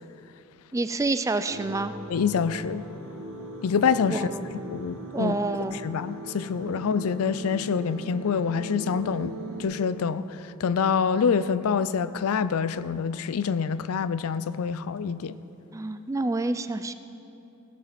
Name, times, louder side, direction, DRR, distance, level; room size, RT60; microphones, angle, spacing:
voice 1, 0.7-1.9 4.1-4.5 5.1-5.8 15.7-16.9, right 2 dB, 15° right, 0.3 m, -28 dB
sound 1, 1.4-9.6, right 1 dB, 70° right, 2.1 m, -39 dB
voice 2, 2.1-2.9 3.6-4.3 4.7-5.4 5.7-15.4, left 6 dB, 75° left, 0.4 m, -26 dB
16.5 x 7.3 x 6.0 m
head